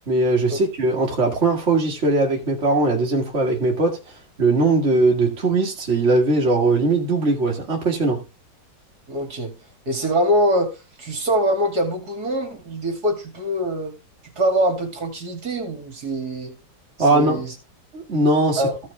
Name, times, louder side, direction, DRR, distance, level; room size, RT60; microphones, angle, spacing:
voice 1, 0.1-4.0 4.4-8.2 17.0-17.4 17.9-18.6, right 2 dB, 35° right, 2.2 m, -20 dB
voice 2, 9.1-9.6 9.9-13.9 14.4-16.5 17.0-17.5 18.6-18.8, equal, 55° right, 3.0 m, -23 dB
15.0 x 6.4 x 3.3 m
omnidirectional pair, 2.1 m